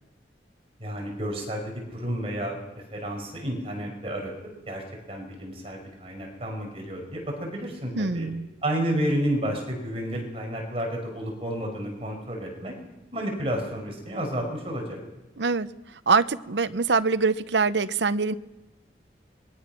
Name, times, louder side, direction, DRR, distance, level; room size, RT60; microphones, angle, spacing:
voice 1, 0.8-2.6 2.9-4.3 4.7-4.8 5.1-8.3 8.6-12.7 13.1-15.0, equal, 30° right, 1 dB, 5.6 m, -31 dB
voice 2, 8.0-8.5 15.4-15.7 16.1-18.3, right 4 dB, 80° right, 13 dB, 0.8 m, -24 dB
26.5 x 22.0 x 6.1 m, 0.99 s
head